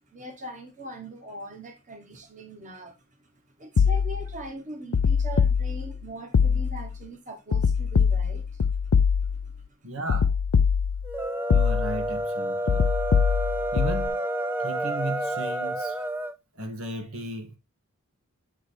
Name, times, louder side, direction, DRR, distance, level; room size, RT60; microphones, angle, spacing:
voice 1, 0.1-3.0 3.6-8.6 9.4-9.5, right 1 dB, 35° right, 1.3 m, -41 dB
sound 1, 3.8-4.4 4.9-6.0 6.3-7.0 7.5-9.6 10.1-11.2 11.5-12.1 12.7-14.1, left 6 dB, 80° left, 0.5 m, -23 dB
voice 2, 9.8-10.4 11.5-12.9 13.7-14.2 14.6-16.0 16.6-17.6, right 1 dB, 80° right, 1.8 m, -35 dB
sound 2, 11.0-16.3, right 1 dB, 10° right, 0.5 m, -29 dB
8.7 x 3.4 x 4.4 m
head